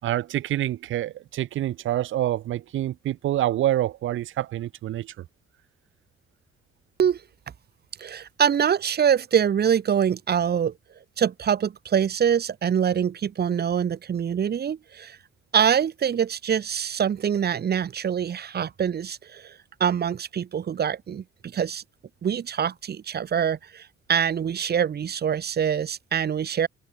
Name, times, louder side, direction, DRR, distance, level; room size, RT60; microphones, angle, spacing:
voice 1, 0.0-5.1, right 13 dB, 80° right, 3.6 m, -27 dB
voice 2, 8.0-10.7 11.2-15.2 15.5-19.5 19.8-21.8 22.2-26.7, right 8 dB, 55° right, 2.9 m, -24 dB
cardioid pair, 90°, 20 cm